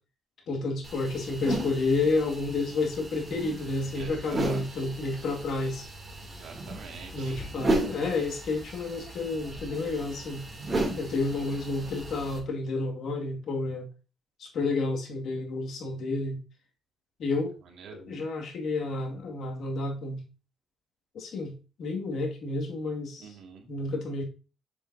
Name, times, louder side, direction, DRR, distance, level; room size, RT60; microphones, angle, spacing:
voice 1, 0.5-5.9 7.1-10.4 11.0-13.9 14.4-16.4 17.2-17.6 18.0-20.2 21.1-21.5 21.8-23.4 23.7-24.2, left 3 dB, 70° left, 2 dB, 2.2 m, -30 dB
sound 1, 0.8-12.4, right 1 dB, 25° right, 2.9 m, -35 dB
voice 2, 3.9-4.6 6.2-7.4 17.6-18.2 23.2-23.7, right 6 dB, 75° right, 1 dB, 2.3 m, -45 dB
7.0 x 7.0 x 2.8 m, 0.33 s
cardioid pair, 90°, 0 cm